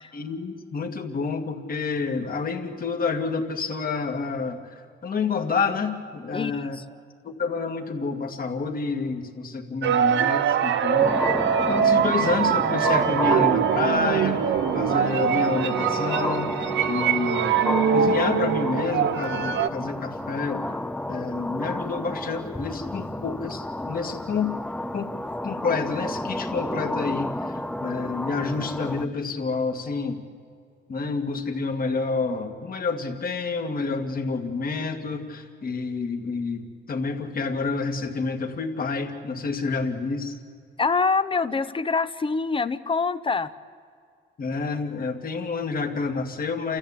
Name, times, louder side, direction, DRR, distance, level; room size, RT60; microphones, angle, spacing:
voice 1, 0.1-6.8 7.2-11.1 11.7-20.6 21.1-24.6 24.9-25.1 25.4-30.2 30.9-40.4 44.4-46.8, left 4 dB, 45° left, 5 dB, 2.3 m, -29 dB
sound 1, 9.8-19.7, right 8 dB, 65° right, 0.8 m, -23 dB
sound 2, 11.0-29.1, left 1 dB, 5° left, 0.6 m, -31 dB
voice 2, 40.8-43.5, left 4 dB, 25° left, 13 dB, 0.9 m, -25 dB
29.5 x 14.0 x 8.5 m, 2.2 s
cardioid pair, 90°, 20 cm